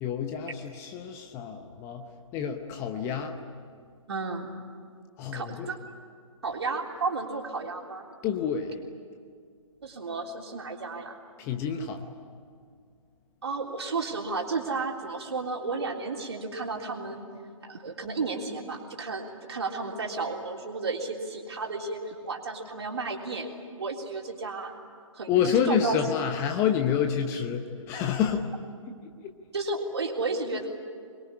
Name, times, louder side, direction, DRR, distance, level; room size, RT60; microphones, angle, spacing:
voice 1, 0.0-3.4 5.2-5.7 8.2-8.8 11.4-12.1 25.3-28.5 29.0-29.1, left 8 dB, 15° left, 6 dB, 0.9 m, -28 dB
voice 2, 4.1-4.5 5.3-5.8 6.4-8.0 9.8-11.2 13.4-17.2 17.6-23.5 23.8-24.7 25.1-26.0 29.5-30.7, right 3 dB, 55° right, 1 dB, 3.6 m, -33 dB
24.5 x 22.0 x 10.0 m, 2.1 s
figure-of-eight pair, 135°, 17 cm